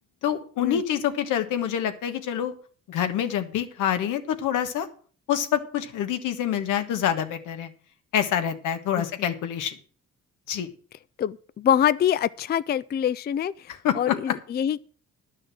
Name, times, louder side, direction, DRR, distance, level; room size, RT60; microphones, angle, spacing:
voice 1, 0.2-2.5 2.9-4.9 5.3-7.7 8.1-9.8 10.5-10.7 13.7-14.1, left 9 dB, 85° left, 1.4 m, -26 dB
voice 2, 11.2-13.5 14.0-14.8, left 9 dB, 35° left, 0.4 m, -24 dB
11.0 x 6.4 x 7.5 m
cardioid pair, 90°, 30 cm